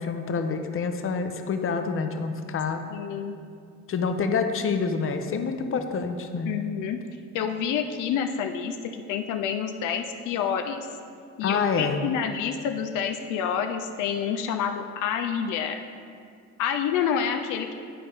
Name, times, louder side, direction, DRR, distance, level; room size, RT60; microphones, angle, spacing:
voice 1, 0.0-2.8 3.9-6.6 11.4-12.0, left 5 dB, 45° left, 7 dB, 0.6 m, -27 dB
voice 2, 2.9-3.4 6.4-7.0 7.3-8.8 9.1-10.9 11.4-15.8 16.6-17.7, left 8 dB, 90° left, 5 dB, 0.5 m, -28 dB
10.5 x 4.2 x 3.4 m, 2.3 s
cardioid pair, 90°, 30 cm